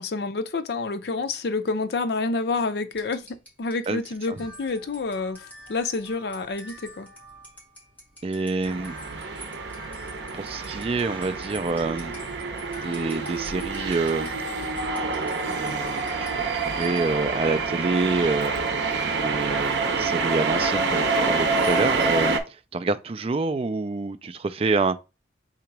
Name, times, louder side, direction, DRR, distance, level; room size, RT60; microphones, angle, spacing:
voice 1, 0.0-3.3 3.6-7.1, left 3 dB, 65° left, 0.5 m, -28 dB
sound 1, 2.9-17.4, equal, 10° left, 1.6 m, -46 dB
voice 2, 8.2-8.9 10.3-12.1 12.8-14.3 15.5-18.5 19.0-25.0, right 3 dB, 35° right, 0.4 m, -27 dB
sound 2, 8.7-22.4, right 4 dB, 85° right, 0.7 m, -27 dB
3.8 x 2.9 x 4.6 m
head